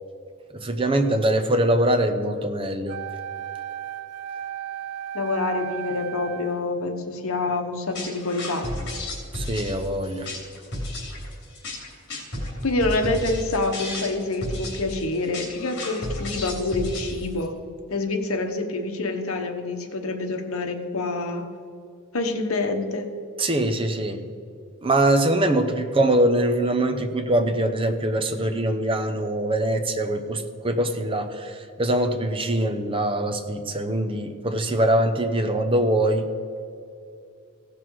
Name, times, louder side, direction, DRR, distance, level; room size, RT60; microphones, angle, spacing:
voice 1, 0.5-3.0 9.3-10.3 23.4-24.2 24.8-36.3, right 1 dB, 25° right, 7 dB, 0.8 m, -23 dB
Wind instrument woodwind instrument, 2.9-6.7, right 10 dB, 90° right, 0.8 m, -35 dB
voice 2, 5.1-8.7 12.6-17.6 17.9-21.5 22.1-23.1, left 2 dB, 70° left, 5 dB, 1.1 m, -27 dB
sound 1, 8.0-17.5, left 1 dB, 55° left, 3.0 m, -33 dB
16.0 x 6.0 x 4.7 m, 2.4 s
head